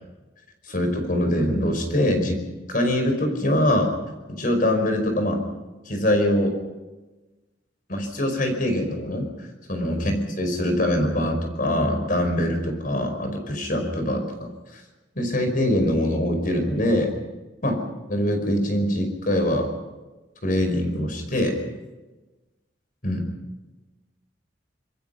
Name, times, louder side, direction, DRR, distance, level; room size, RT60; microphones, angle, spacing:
voice 1, 0.7-2.4 2.7-3.9 4.3-5.4 5.9-6.5 7.9-9.3 9.7-14.8 15.2-17.1 17.6-17.8 18.1-19.7 20.4-21.6 23.0-23.3, left 1 dB, 50° left, 5 dB, 5.3 m, -23 dB
26.5 x 21.5 x 5.8 m, 1.2 s
head